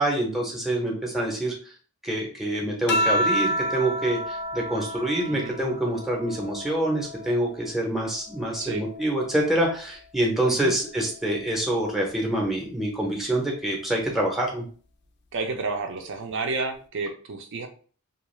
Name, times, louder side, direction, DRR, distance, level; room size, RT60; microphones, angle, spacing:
voice 1, 0.0-1.5 2.0-14.7, right 1 dB, ahead, -1 dB, 0.6 m, -26 dB
sound 1, 2.9-7.7 8.1-9.9 11.1-11.6, equal, 55° left, 0.4 m, -30 dB
voice 2, 15.3-17.7, right 3 dB, 60° right, 5 dB, 0.5 m, -31 dB
2.4 x 2.3 x 3.0 m, 0.41 s
head